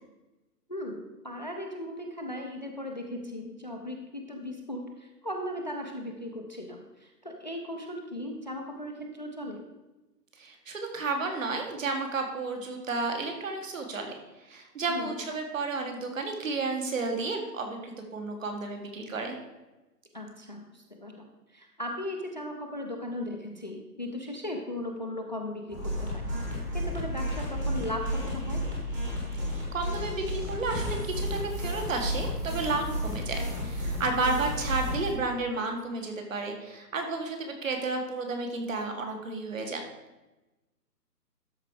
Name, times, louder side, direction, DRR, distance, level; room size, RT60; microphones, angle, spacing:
voice 1, 0.7-9.6 14.9-15.2 20.1-26.3 26.7-28.6 34.2-34.4, left 1 dB, 30° left, 2 dB, 0.5 m, -37 dB
voice 2, 10.4-14.1 14.4-19.4 29.7-39.8, right 3 dB, 50° right, 3 dB, 1.9 m, -32 dB
sound 1, 25.7-35.1, equal, 10° right, 1.2 m, -32 dB
12.5 x 4.8 x 4.7 m, 1.1 s
hypercardioid pair, 170°, 49 cm